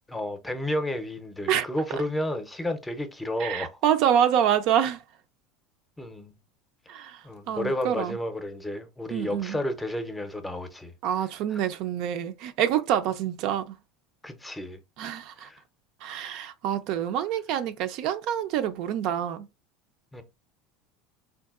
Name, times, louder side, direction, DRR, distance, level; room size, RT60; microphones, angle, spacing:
voice 1, 0.1-3.7 6.0-6.3 7.2-10.9 11.5-11.6 14.2-14.8 15.4-15.6 20.1-20.2, left 1 dB, 10° left, 0.6 m, -32 dB
voice 2, 3.4-5.0 6.9-8.2 9.1-9.6 11.0-13.8 15.0-15.5 16.0-19.5, right 10 dB, 60° right, 0.4 m, -26 dB
3.6 x 2.5 x 2.4 m
supercardioid pair, 115°, 0 cm